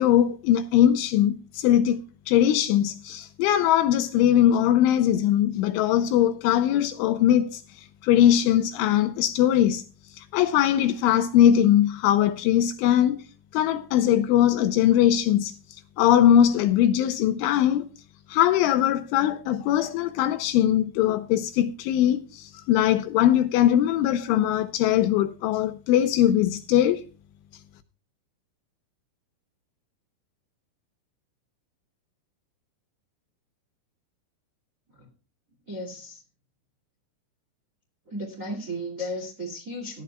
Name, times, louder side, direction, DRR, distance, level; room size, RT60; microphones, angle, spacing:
voice 1, 0.0-2.0 2.3-7.6 8.0-9.8 10.1-13.2 13.5-15.5 16.0-17.9 18.3-27.0, left 11 dB, 80° left, 2.9 m, -21 dB
voice 2, 35.7-36.2 38.0-40.0, equal, 35° right, 1.3 m, -35 dB
17.5 x 12.0 x 2.3 m
omnidirectional pair, 5.9 m